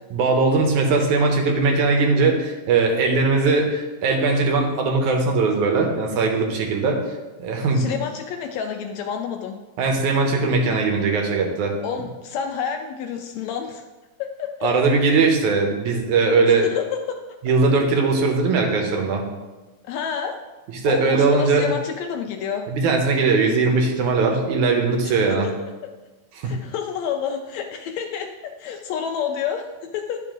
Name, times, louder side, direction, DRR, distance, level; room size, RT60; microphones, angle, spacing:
voice 1, 0.1-7.0 7.4-8.0 9.8-11.7 14.6-16.7 17.4-19.2 20.8-21.7 22.7-25.5 26.4-26.6, right 4 dB, 80° right, 2 dB, 2.5 m, -20 dB
voice 2, 7.7-9.6 11.8-13.8 14.2-14.7 16.5-17.2 19.8-20.4 20.8-22.7 25.0-25.5 26.4-30.2, left 7 dB, 80° left, 4 dB, 1.6 m, -29 dB
11.0 x 5.5 x 3.8 m, 1.2 s
omnidirectional pair, 3.5 m